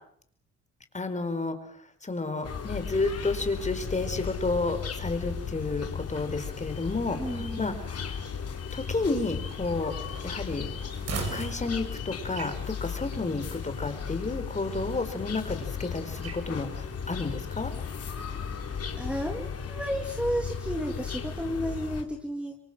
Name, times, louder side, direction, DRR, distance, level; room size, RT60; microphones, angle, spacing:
voice 1, 0.9-1.6 2.0-7.2 7.6-8.1 8.7-9.9 10.2-10.7 11.3-17.7, left 3 dB, 25° left, 8 dB, 4.8 m, -31 dB
sound 1, 2.4-22.0, left 6 dB, 55° left, 4.1 m, -36 dB
sound 2, 2.4-19.5, right 5 dB, 55° right, 6.5 m, -46 dB
voice 2, 7.2-7.8 19.0-22.6, equal, 5° right, 3 dB, 3.0 m, -32 dB
27.5 x 23.5 x 7.6 m, 0.65 s
cardioid pair, 90°, 30 cm